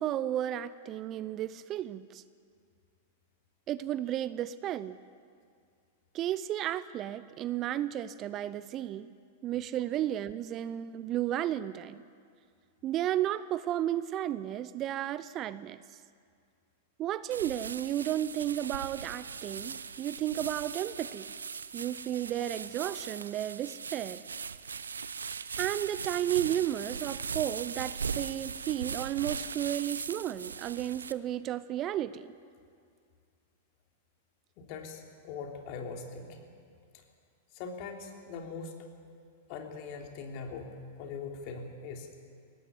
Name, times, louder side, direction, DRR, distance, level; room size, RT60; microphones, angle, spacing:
voice 1, 0.0-2.2 3.7-5.0 6.1-9.1 9.4-12.0 12.8-15.8 17.0-21.3 21.7-24.2 25.6-32.3, right 12 dB, 35° right, 16 dB, 0.6 m, -33 dB
sound 1, 17.3-31.1, right 6 dB, 75° right, 0.7 m, -39 dB
voice 2, 34.6-36.5 37.5-38.7 39.5-42.1, left 5 dB, 45° left, 2 dB, 3.2 m, -41 dB
21.5 x 18.0 x 8.4 m, 2.2 s
figure-of-eight pair, 95°, 0 cm